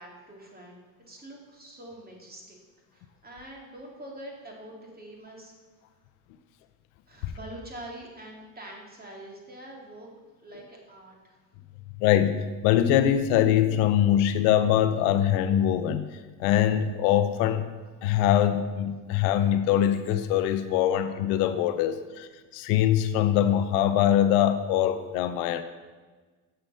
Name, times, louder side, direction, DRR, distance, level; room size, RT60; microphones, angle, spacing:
voice 1, 0.0-2.6 2.9-5.5 7.1-10.1 10.4-11.4, right 1 dB, 20° right, -1 dB, 2.5 m, -45 dB
voice 2, 12.0-16.1 16.4-17.7 18.0-25.6, left 10 dB, 80° left, 11 dB, 0.7 m, -23 dB
7.7 x 6.3 x 5.6 m, 1.3 s
supercardioid pair, 90°, 43 cm